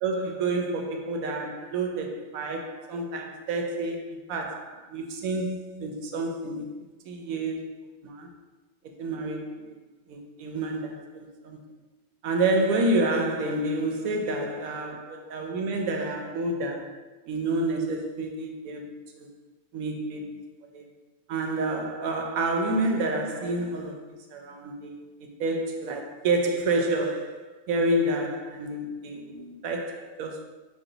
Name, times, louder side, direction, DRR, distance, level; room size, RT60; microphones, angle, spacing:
voice 1, 0.0-6.7 7.0-8.3 9.0-9.7 10.1-11.6 12.2-19.3 19.7-20.4 20.7-20.9 21.3-25.0 25.4-30.4, right 2 dB, 70° right, 1.0 m, -29 dB
5.3 x 2.3 x 3.9 m
omnidirectional pair, 1.6 m